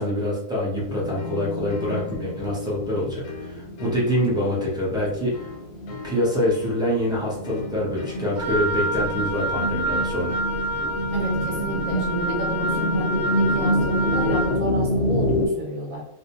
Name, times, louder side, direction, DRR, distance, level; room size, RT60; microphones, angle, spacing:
voice 1, 0.0-5.5 6.0-10.4, equal, 5° right, -7 dB, 0.5 m, -25 dB
sound 1, 0.7-15.5, equal, 70° left, 0.8 m, -28 dB
sound 2, 1.2-11.7, left 6 dB, 85° left, 1.1 m, -42 dB
Wind instrument woodwind instrument, 8.4-14.6, right 1 dB, 40° right, 0.8 m, -27 dB
voice 2, 11.1-16.0, right 2 dB, 70° right, -2 dB, 1.0 m, -31 dB
2.6 x 2.1 x 2.9 m, 0.75 s
omnidirectional pair, 1.6 m